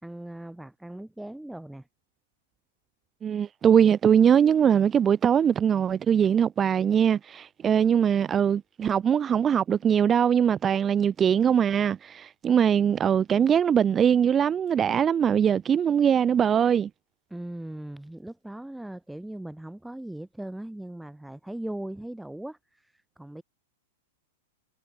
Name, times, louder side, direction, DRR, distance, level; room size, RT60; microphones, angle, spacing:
voice 1, 0.0-1.9 17.3-23.4, right 1 dB, 5° right, 2.6 m, -39 dB
voice 2, 3.2-16.9, right 8 dB, 25° right, 0.7 m, -22 dB
hypercardioid pair, 115°, 0 cm